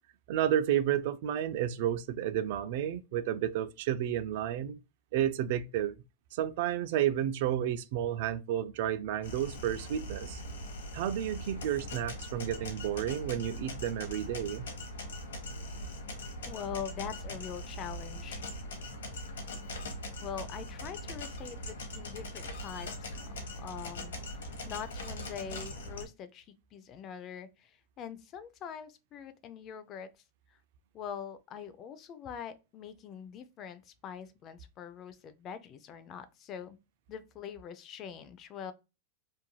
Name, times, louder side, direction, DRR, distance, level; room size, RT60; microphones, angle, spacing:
voice 1, 0.3-4.8 5.1-5.9 6.3-10.4 10.9-14.7, right 11 dB, 60° right, 0.3 m, -31 dB
sound 1, 9.2-26.1, left 1 dB, 85° left, 0.9 m, -41 dB
voice 2, 16.5-18.4 20.2-23.2 23.6-24.1 24.6-30.1 30.9-36.8 37.1-38.7, left 8 dB, 35° left, 0.4 m, -43 dB
2.9 x 2.6 x 2.2 m
hypercardioid pair, 130°, 0 cm